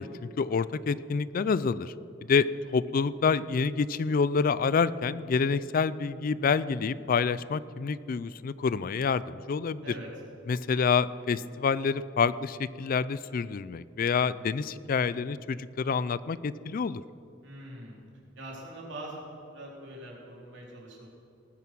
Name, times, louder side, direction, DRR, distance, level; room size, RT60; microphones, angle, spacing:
voice 1, 0.0-1.9 2.3-9.9 10.5-17.0, left 5 dB, 45° left, 17 dB, 0.4 m, -27 dB
voice 2, 17.4-18.0 18.4-21.1, right 1 dB, 65° right, -3 dB, 3.9 m, -43 dB
19.0 x 9.3 x 6.1 m, 2.6 s
head